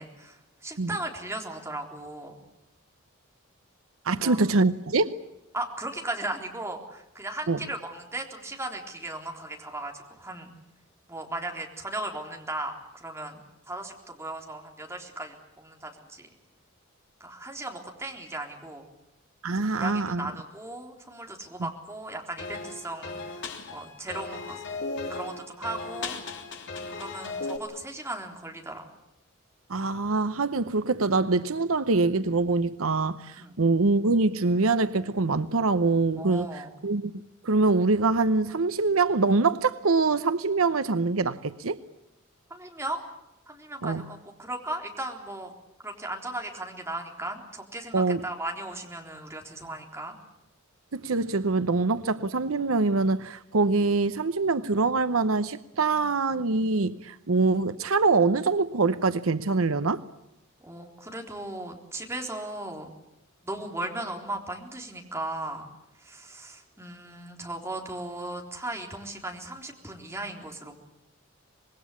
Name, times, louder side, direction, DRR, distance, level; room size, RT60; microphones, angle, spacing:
voice 1, 0.0-2.4 4.1-4.4 5.5-10.5 11.1-16.3 17.2-18.9 19.7-24.6 25.1-26.2 26.9-28.9 33.4-33.5 36.2-36.8 42.5-43.0 43.5-45.5 45.8-50.2 60.6-62.9 63.4-65.7 66.0-70.7, right 2 dB, 15° right, 3.8 m, -37 dB
voice 2, 4.0-5.2 7.5-7.6 19.4-20.3 21.6-21.7 29.7-37.1 37.4-41.8 43.8-44.1 47.9-48.3 50.9-60.0, right 3 dB, 75° right, 0.8 m, -24 dB
sound 1, 22.4-27.6, left 3 dB, 60° left, 3.3 m, -36 dB
25.5 x 21.0 x 8.5 m
head